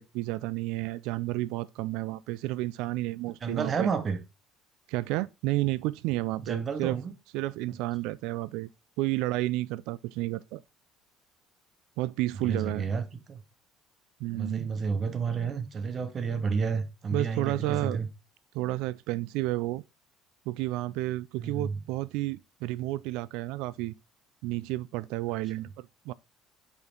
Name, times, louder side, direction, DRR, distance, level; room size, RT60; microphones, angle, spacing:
voice 1, 0.0-3.9 4.9-7.0 7.3-8.7 9.0-10.6 12.0-12.8 14.2-14.7 17.1-18.0 18.5-19.8 20.5-23.9 24.4-26.1, right 18 dB, 80° right, 0.3 m, -31 dB
voice 2, 3.4-4.2 6.4-7.1 12.4-13.4 14.3-18.1 21.4-21.8, right 5 dB, 30° right, 0.8 m, -31 dB
5.7 x 4.3 x 3.8 m
cardioid pair, 155°, 0 cm